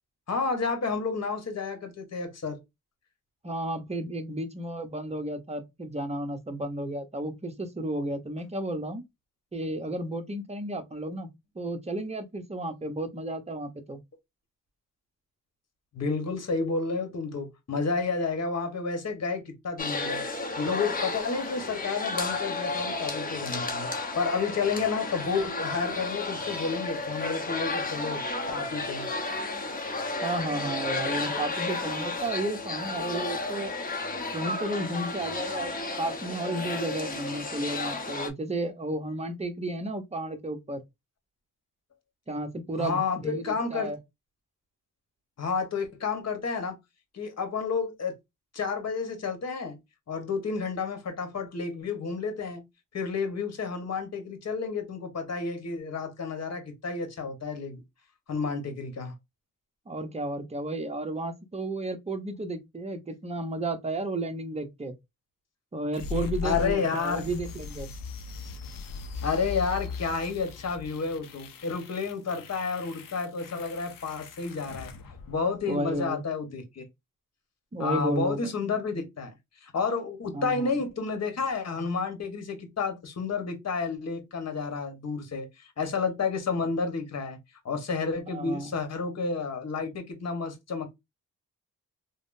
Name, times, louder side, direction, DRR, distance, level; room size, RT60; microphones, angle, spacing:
voice 1, 0.3-2.6 15.9-20.2 20.6-28.2 28.5-29.1 42.8-43.9 45.4-46.8 47.1-48.2 48.5-49.8 50.1-52.6 52.9-57.8 58.3-59.1 66.4-67.2 69.2-74.9 75.3-76.8 77.8-79.3 79.6-87.4 87.6-90.9, left 4 dB, 45° left, 1.1 m, -30 dB
voice 2, 3.4-9.0 9.5-11.3 11.6-14.0 30.2-33.7 34.3-40.8 42.3-44.0 59.9-64.9 65.7-67.9 75.7-76.2 77.7-78.4 80.3-80.8 88.3-88.7, right 1 dB, 20° right, 0.7 m, -33 dB
sound 1, 19.8-38.3, left 3 dB, 25° left, 0.8 m, -32 dB
sound 2, 65.9-75.9, left 4 dB, 65° left, 0.6 m, -39 dB
3.5 x 2.1 x 2.5 m
cardioid pair, 80°, 35 cm